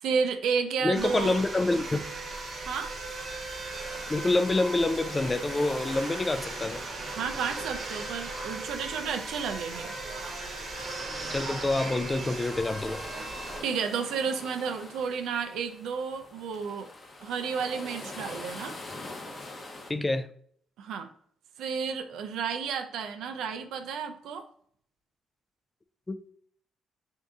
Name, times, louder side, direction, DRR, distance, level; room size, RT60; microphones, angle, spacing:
voice 1, 0.0-1.4 2.7-2.9 7.2-9.9 13.6-16.9 17.2-18.8 20.8-21.1 21.6-24.4, right 6 dB, 85° right, 0.4 m, -32 dB
voice 2, 0.8-2.0 4.1-6.8 11.3-13.0 19.9-20.3 26.1-26.2, left 2 dB, 20° left, 0.3 m, -27 dB
sound 1, 0.9-13.6, right 2 dB, 50° right, 0.9 m, -37 dB
sound 2, 3.7-19.9, left 2 dB, 40° left, 0.8 m, -45 dB
3.7 x 2.6 x 3.5 m
cardioid pair, 90°, 0 cm